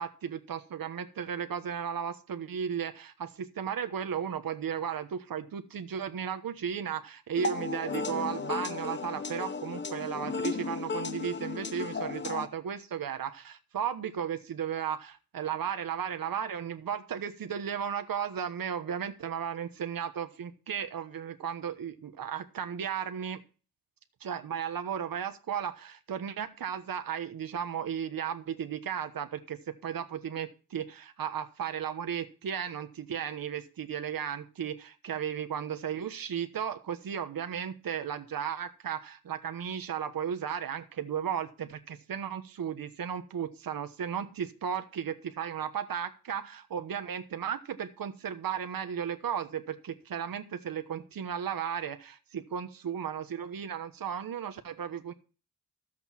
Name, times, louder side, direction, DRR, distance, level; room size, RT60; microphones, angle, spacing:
voice 1, 0.0-23.4 24.2-55.1, right 8 dB, 75° right, 8 dB, 1.2 m, -35 dB
sound 1, 7.3-12.5, left 4 dB, 30° left, 0.8 m, -34 dB
13.5 x 8.0 x 4.4 m, 0.35 s
wide cardioid pair, 180°, 35 cm